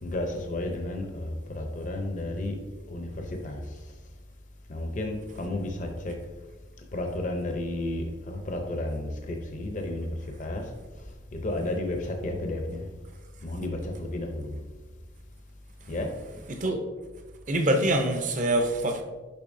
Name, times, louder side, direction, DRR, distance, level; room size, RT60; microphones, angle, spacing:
voice 1, 0.0-2.6 2.9-3.8 4.7-6.1 6.9-10.7 11.3-12.9 13.4-14.6 15.9-16.1, left 1 dB, 40° left, 0.6 m, -32 dB
voice 2, 16.5-16.8 17.5-19.0, right 1 dB, 40° right, 0.7 m, -25 dB
6.9 x 5.4 x 2.6 m
head